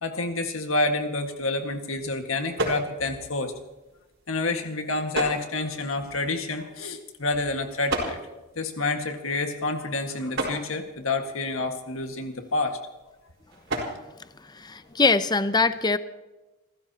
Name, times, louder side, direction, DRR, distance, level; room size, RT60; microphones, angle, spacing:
voice 1, 0.0-3.5 4.3-8.2 8.6-12.8, left 2 dB, 65° left, 5 dB, 1.8 m, -28 dB
sound 1, 0.9-15.3, right 2 dB, 60° right, 4.3 m, -37 dB
voice 2, 14.2-16.0, left 3 dB, 20° left, 12 dB, 0.6 m, -23 dB
28.5 x 14.5 x 2.9 m, 1.1 s
head